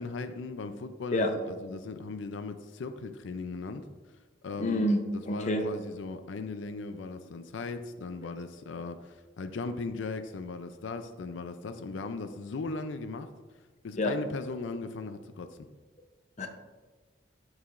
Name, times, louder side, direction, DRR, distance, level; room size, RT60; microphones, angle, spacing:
voice 1, 0.0-3.9 4.4-4.9 5.1-13.3 13.8-15.6, left 3 dB, 90° left, 9 dB, 0.5 m, -38 dB
voice 2, 4.6-5.7 14.0-14.1 16.4-16.5, left 1 dB, 40° left, 5 dB, 0.6 m, -28 dB
13.5 x 4.8 x 2.5 m, 1.3 s
head